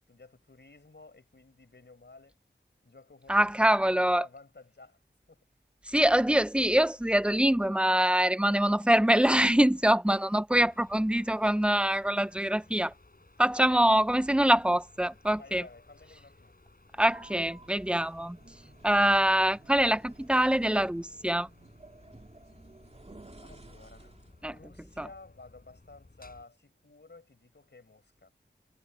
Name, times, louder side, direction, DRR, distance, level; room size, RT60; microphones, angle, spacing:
voice 1, 0.0-2.4 2.8-5.0 5.3-5.4 13.6-13.9 15.4-16.6 23.4-24.1 24.4-28.3, left 3 dB, 70° left, 5.3 m, -53 dB
voice 2, 3.3-4.2 5.9-12.9 13.4-15.6 17.0-18.4 18.8-21.5 24.4-24.5 25.0-25.1, right 1 dB, 5° right, 0.7 m, -24 dB
sound 1, 10.5-26.5, left 2 dB, 50° left, 7.9 m, -58 dB
sound 2, 16.9-24.4, right 2 dB, 35° right, 2.5 m, -53 dB
wide cardioid pair, 40°, 19 cm